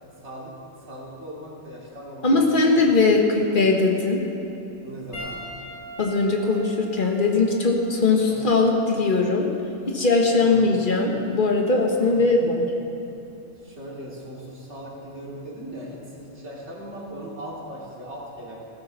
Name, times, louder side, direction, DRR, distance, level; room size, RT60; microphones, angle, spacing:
voice 1, 0.2-0.5 0.8-3.0 4.8-5.4 8.3-8.5 10.4-10.7 12.0-12.3 13.6-18.6, right 1 dB, 60° right, -4 dB, 3.0 m, -39 dB
voice 2, 2.2-4.2 6.0-9.5 9.9-12.6, left 3 dB, 40° left, 1 dB, 1.5 m, -20 dB
Piano, 5.1-9.8 10.7-10.9 12.9-13.0, equal, 55° left, 4.4 m, -42 dB
15.5 x 14.0 x 4.1 m, 2.9 s
omnidirectional pair, 1.3 m